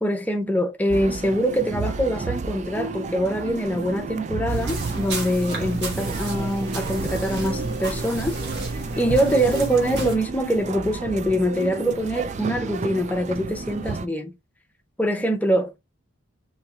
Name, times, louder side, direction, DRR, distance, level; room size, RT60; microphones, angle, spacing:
voice 1, 0.0-8.4 9.0-14.3 15.0-15.8, equal, 5° left, 0.6 m, -24 dB
sound 1, 0.9-14.1, right 3 dB, 35° right, 0.3 m, -32 dB
sound 2, 4.5-10.2, right 2 dB, 50° right, 1.4 m, -31 dB
4.2 x 3.0 x 3.8 m
head